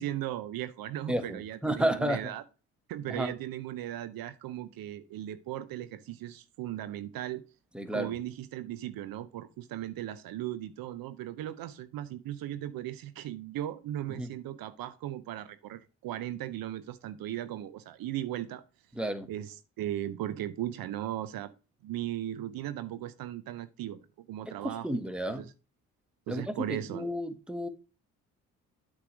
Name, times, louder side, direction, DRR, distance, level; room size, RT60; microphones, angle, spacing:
voice 1, 0.0-2.4 2.9-7.4 7.9-18.6 19.3-21.5 21.8-24.0 24.3-25.0 25.3-25.5 26.3-27.1, right 12 dB, 70° right, 0.7 m, -37 dB
voice 2, 1.1-2.2 3.1-3.3 7.7-8.1 14.1-14.3 18.9-19.3 24.5-25.5 26.3-27.7, right 1 dB, 5° right, 1.3 m, -32 dB
8.3 x 3.3 x 6.1 m
hypercardioid pair, 50°, 36 cm